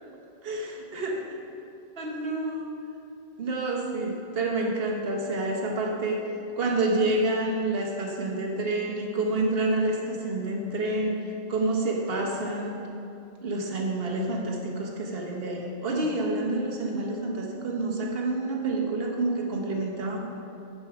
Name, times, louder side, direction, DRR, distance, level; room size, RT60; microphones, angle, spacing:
voice 1, 0.4-1.2 2.0-2.6 3.4-6.2 6.6-11.2 11.5-12.8 13.4-20.2, right 2 dB, 65° right, 0 dB, 1.3 m, -28 dB
7.0 x 6.8 x 4.7 m, 2.7 s
omnidirectional pair, 1.1 m